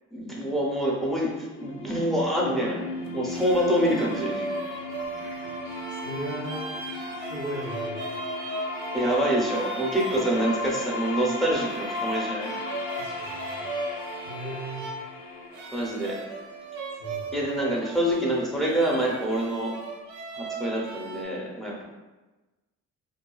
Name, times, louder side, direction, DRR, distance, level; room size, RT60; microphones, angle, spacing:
voice 1, 0.1-2.8 3.1-4.5 8.9-12.5 15.7-16.2 17.3-19.7 20.4-21.8, right 1 dB, ahead, -3 dB, 0.6 m, -26 dB
sound 1, 1.3-17.2, left 2 dB, 60° left, 0.5 m, -36 dB
sound 2, 3.1-21.2, right 2 dB, 75° right, 0.5 m, -38 dB
voice 2, 5.1-6.9 7.2-8.1 13.0-13.6 14.2-14.8 17.0-17.3, right 1 dB, 85° left, -5 dB, 1.0 m, -38 dB
2.6 x 2.3 x 2.2 m, 1.1 s
cardioid pair, 90°, 30 cm